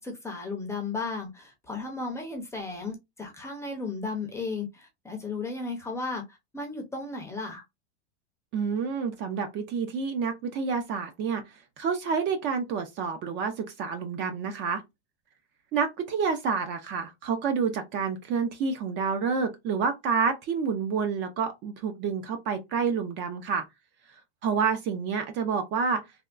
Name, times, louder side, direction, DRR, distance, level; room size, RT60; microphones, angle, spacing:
voice 1, 0.0-7.6, left 3 dB, 10° left, 0.6 m, -35 dB
voice 2, 8.5-14.8 15.7-23.6 24.4-26.0, right 5 dB, 35° right, 0.5 m, -28 dB
3.4 x 2.2 x 2.4 m
supercardioid pair, 140°, 34 cm